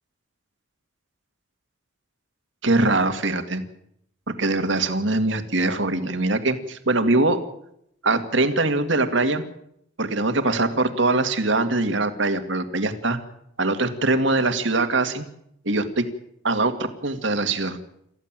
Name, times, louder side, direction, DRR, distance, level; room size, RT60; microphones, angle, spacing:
voice 1, 2.6-3.6 4.4-7.4 8.0-9.4 10.0-13.2 13.6-15.3 15.6-16.1 16.4-17.8, right 2 dB, 65° right, 8 dB, 2.1 m, -22 dB
27.5 x 14.5 x 7.5 m, 0.75 s
head